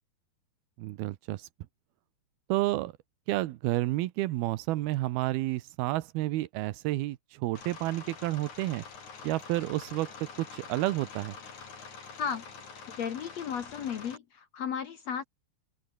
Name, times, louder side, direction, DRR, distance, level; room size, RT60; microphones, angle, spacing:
voice 1, 0.8-1.5 2.5-2.9 3.3-8.8 9.2-11.4, right 17 dB, 75° right, 2.6 m, -30 dB
sound 1, 7.6-14.2, left 5 dB, 45° left, 5.3 m, -46 dB
voice 2, 13.0-15.2, left 7 dB, 60° left, 1.8 m, -34 dB
omnidirectional pair, 5.0 m